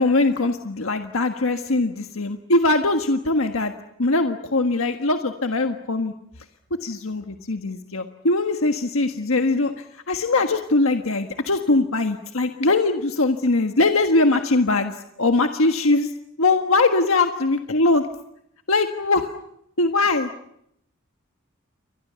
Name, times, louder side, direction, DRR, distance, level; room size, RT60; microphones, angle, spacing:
voice 1, 0.0-3.7 4.0-6.1 6.8-9.7 10.1-14.9 15.2-16.1 16.4-18.0 18.7-19.3 19.8-20.3, left 2 dB, 75° left, 5 dB, 1.5 m, -21 dB
29.5 x 24.5 x 7.0 m, 0.77 s
head